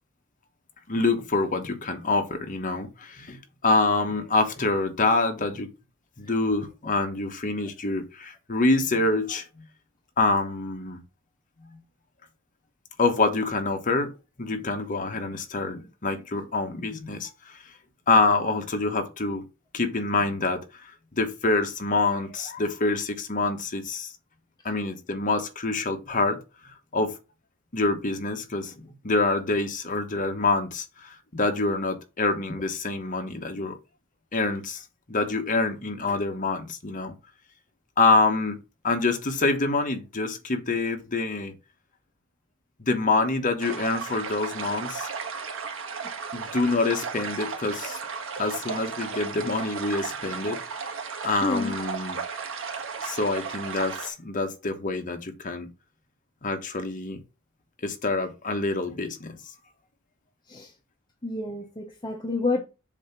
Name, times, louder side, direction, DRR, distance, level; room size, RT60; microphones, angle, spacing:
voice 1, 0.9-5.7 6.2-9.6 10.2-11.0 11.6-11.8 13.0-14.1 14.4-17.6 18.1-19.5 19.7-20.9 21.2-24.1 24.6-26.4 26.9-27.1 27.7-33.8 34.3-37.1 38.0-38.6 38.8-41.5 42.8-45.1 46.3-48.0 48.4-50.8 51.2-52.2 53.0-55.7 56.4-57.2 57.8-59.4, left 3 dB, 40° left, 1.2 m, -26 dB
sound 1, 43.6-54.1, right 5 dB, 65° right, 1.6 m, -35 dB
voice 2, 51.4-51.7 60.5-60.7 61.2-62.6, left 3 dB, 20° left, 1.0 m, -28 dB
7.2 x 2.9 x 5.8 m
head